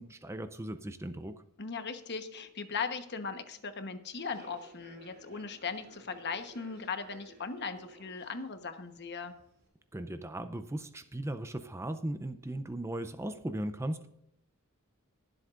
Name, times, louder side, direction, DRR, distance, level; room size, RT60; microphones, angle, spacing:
voice 1, 0.0-1.4 9.9-14.1, right 1 dB, 10° right, 10 dB, 0.5 m, -37 dB
voice 2, 1.6-9.3, left 5 dB, 50° left, 8 dB, 1.1 m, -38 dB
Human voice / Subway metro underground, 4.1-9.7, right 1 dB, 50° right, 4.2 m, -57 dB
21.5 x 7.9 x 2.5 m, 0.79 s
head